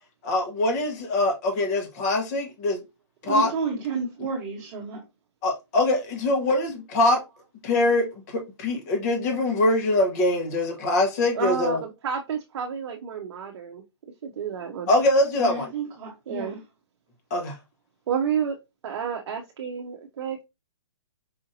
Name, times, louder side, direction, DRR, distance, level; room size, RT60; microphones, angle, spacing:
voice 1, 0.2-2.8 3.2-3.5 5.4-7.2 7.6-11.8 14.9-15.7 17.3-17.6, left 2 dB, 35° left, 1.0 m, -23 dB
voice 2, 3.2-5.0 15.4-16.6, right 4 dB, 25° right, 1.2 m, -31 dB
voice 3, 11.3-13.8 14.2-14.9 16.3-16.6 18.1-18.6 18.8-20.4, right 7 dB, 60° right, 0.6 m, -30 dB
4.9 x 2.6 x 2.6 m
hypercardioid pair, 150°, 15 cm